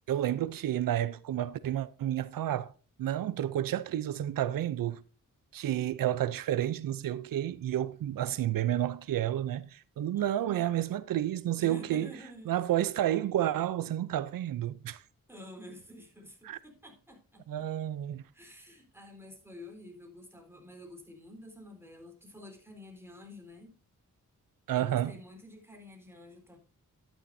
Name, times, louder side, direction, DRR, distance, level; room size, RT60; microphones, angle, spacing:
voice 1, 0.1-2.7 3.0-5.0 5.5-12.1 12.5-15.0 16.4-16.6 17.5-18.2 24.7-25.2, right 12 dB, 90° right, 0.5 m, -30 dB
voice 2, 10.1-10.6 11.6-12.5 15.3-17.7 18.3-23.7 24.7-26.6, left 1 dB, 5° right, 3.9 m, -49 dB
11.5 x 10.0 x 2.6 m
cardioid pair, 75°, 33 cm